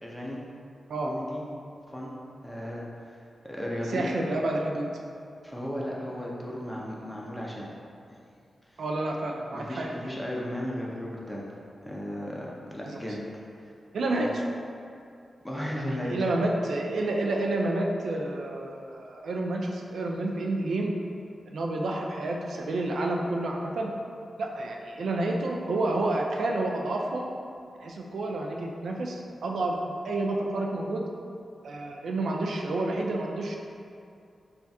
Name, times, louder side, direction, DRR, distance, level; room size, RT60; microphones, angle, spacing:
voice 1, 0.0-0.4 1.0-1.4 1.9-2.1 2.4-2.8 3.4-4.1 5.4-7.7 8.1-8.2 8.7-8.8 9.5-11.5 11.8-13.2 14.2-14.3 15.4-16.2, equal, 5° left, -4 dB, 0.5 m, -35 dB
voice 2, 3.9-4.9 8.8-9.9 12.9-13.0 13.9-14.3 15.9-20.9 21.5-23.9 24.4-27.3 27.8-29.8 30.0-31.0 31.6-33.6, right 2 dB, 85° right, 0 dB, 0.3 m, -29 dB
3.4 x 2.3 x 4.1 m, 2.5 s
wide cardioid pair, 150°, 0 cm